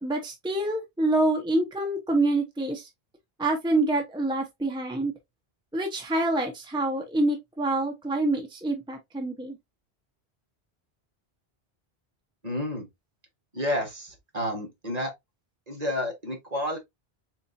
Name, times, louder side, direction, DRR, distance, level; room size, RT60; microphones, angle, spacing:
voice 1, 0.0-2.9 3.4-5.1 5.7-9.6, right 2 dB, 5° right, 0.9 m, -26 dB
voice 2, 12.4-12.9 13.5-15.1 15.7-16.8, left 1 dB, 40° right, 1.6 m, -30 dB
4.4 x 4.2 x 2.6 m
omnidirectional pair, 1.1 m